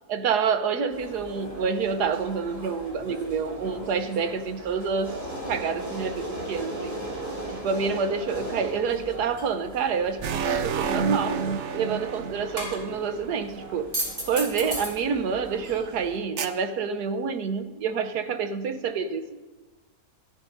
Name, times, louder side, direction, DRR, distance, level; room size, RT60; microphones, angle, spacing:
voice 1, 0.1-5.1 5.5-6.9 7.5-11.4 11.7-13.9 14.3-19.4, right 5 dB, 75° right, 9 dB, 1.4 m, -28 dB
sound 1, 0.9-16.2, right 1 dB, 30° right, 3.1 m, -37 dB
sound 2, 10.2-13.7 16.4-16.5, right 6 dB, 55° right, 0.8 m, -29 dB
26.0 x 10.5 x 2.6 m, 1.3 s
omnidirectional pair, 1.7 m